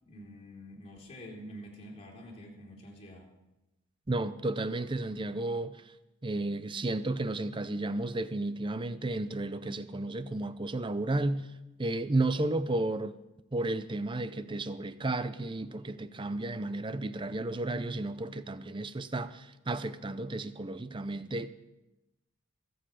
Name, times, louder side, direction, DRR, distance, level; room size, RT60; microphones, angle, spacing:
voice 1, 0.0-3.3, equal, 30° left, 3.2 m, -47 dB
voice 2, 4.1-5.8 6.2-11.5 11.8-13.2 13.5-21.5, right 2 dB, 25° right, 0.5 m, -33 dB
23.0 x 8.0 x 4.9 m
head